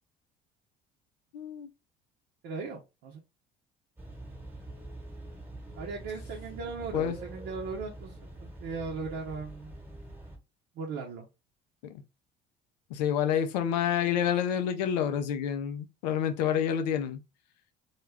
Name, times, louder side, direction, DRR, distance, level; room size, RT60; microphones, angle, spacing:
voice 1, 1.3-1.7 6.9-7.2 11.8-12.0 12.9-17.2, left 9 dB, 85° left, 0.5 m, -28 dB
voice 2, 2.4-3.2 5.8-9.7 10.7-11.3, right 4 dB, 60° right, 0.7 m, -38 dB
sound 1, 4.0-10.4, right 1 dB, 10° right, 1.1 m, -45 dB
2.3 x 2.2 x 3.3 m
hypercardioid pair, 75°, 21 cm